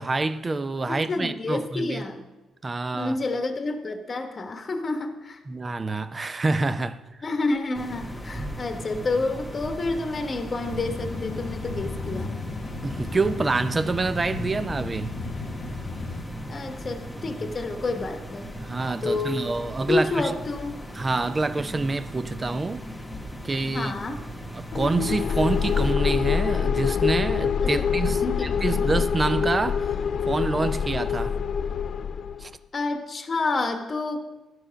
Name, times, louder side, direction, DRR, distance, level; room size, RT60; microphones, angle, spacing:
voice 1, 0.0-2.1 2.6-3.1 5.5-7.0 12.8-15.1 18.6-20.3 21.0-22.8 23.4-23.9 24.5-28.2 28.6-29.9 30.3-31.4 32.4-32.5, right 3 dB, 25° right, 0.5 m, -27 dB
voice 2, 0.9-2.2 2.9-5.4 7.2-12.3 16.5-18.6 19.0-19.5 19.9-20.8 23.7-24.2 27.6-29.0 32.7-34.2, left 3 dB, 35° left, 1.1 m, -29 dB
sound 1, 7.7-25.9, equal, 10° left, 1.2 m, -38 dB
sound 2, 10.6-16.2, left 3 dB, 85° left, 0.9 m, -35 dB
sound 3, 24.7-32.5, left 7 dB, 60° left, 0.3 m, -25 dB
11.0 x 4.8 x 6.2 m
cardioid pair, 90°, 0 cm